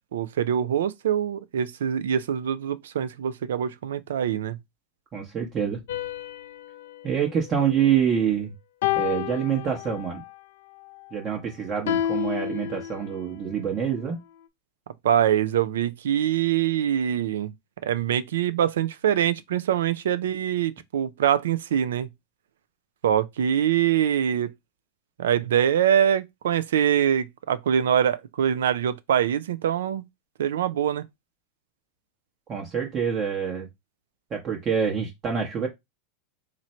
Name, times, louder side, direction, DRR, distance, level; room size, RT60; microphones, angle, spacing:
voice 1, 0.1-4.6 15.0-17.5 17.8-22.1 23.0-24.5 25.2-30.1 30.4-31.1, right 9 dB, 90° right, 0.4 m, -24 dB
voice 2, 5.1-5.8 7.0-8.5 9.0-10.2 11.1-14.2 32.5-33.7 34.3-35.7, right 8 dB, 30° right, 0.9 m, -26 dB
sound 1, 5.9-8.2 8.8-10.3 11.9-13.4, left 12 dB, 80° left, 0.4 m, -31 dB
3.1 x 2.5 x 4.2 m
supercardioid pair, 130°, 0 cm